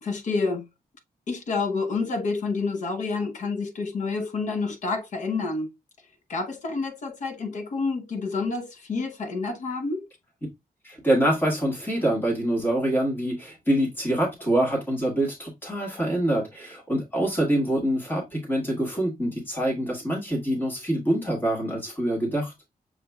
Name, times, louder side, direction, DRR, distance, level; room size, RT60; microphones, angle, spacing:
voice 1, 0.0-0.7 1.3-5.7 6.3-10.1, left 4 dB, 55° left, 0.8 m, -28 dB
voice 2, 10.8-22.5, right 1 dB, 15° left, 1.6 m, -25 dB
6.6 x 3.0 x 2.3 m
wide cardioid pair, 180°, 15 cm